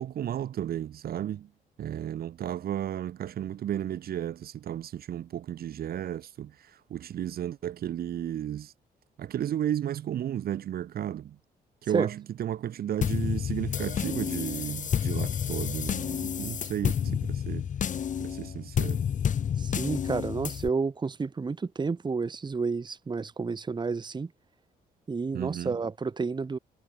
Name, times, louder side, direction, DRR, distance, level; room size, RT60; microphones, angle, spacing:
voice 1, 0.0-1.5 1.8-8.7 9.2-11.4 11.8-17.7 18.2-19.0 25.3-25.8, right 10 dB, 70° right, 2.8 m, -33 dB
sound 1, 13.0-20.7, left 8 dB, 55° left, 1.4 m, -30 dB
voice 2, 19.6-24.3 25.1-26.6, right 4 dB, 30° right, 1.4 m, -30 dB
cardioid pair, 95°, 16 cm